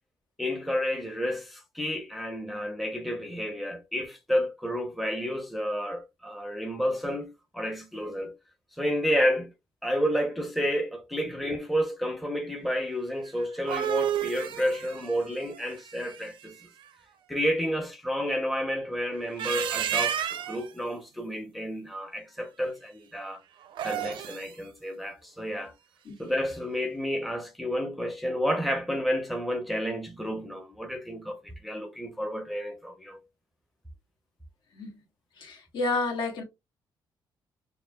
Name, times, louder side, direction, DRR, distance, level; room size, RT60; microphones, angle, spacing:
voice 1, 0.4-7.3 7.5-8.3 8.7-9.5 9.8-16.6 17.3-23.4 23.8-25.7 26.2-33.2, equal, ahead, 0.6 m, -30 dB
sound 1, 13.4-16.5 19.2-20.7 23.6-24.5, right 10 dB, 75° right, 0.5 m, -31 dB
voice 2, 35.4-36.4, left 3 dB, 70° left, 1.5 m, -30 dB
6.3 x 2.2 x 2.2 m
cardioid pair, 150°, 8 cm